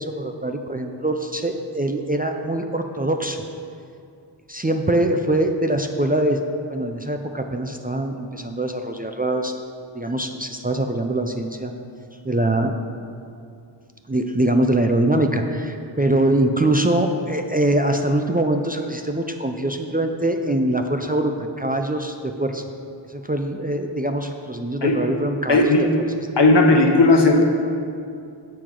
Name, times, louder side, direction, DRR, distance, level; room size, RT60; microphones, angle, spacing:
voice 1, 0.0-3.4 4.5-9.5 9.9-11.7 12.2-12.7 14.1-22.6 23.1-25.7, right 1 dB, 20° right, 4 dB, 0.5 m, -23 dB
voice 2, 25.5-25.8 26.4-27.4, left 2 dB, 60° left, 3 dB, 1.0 m, -15 dB
14.5 x 4.9 x 3.8 m, 2.5 s
wide cardioid pair, 50°, 46 cm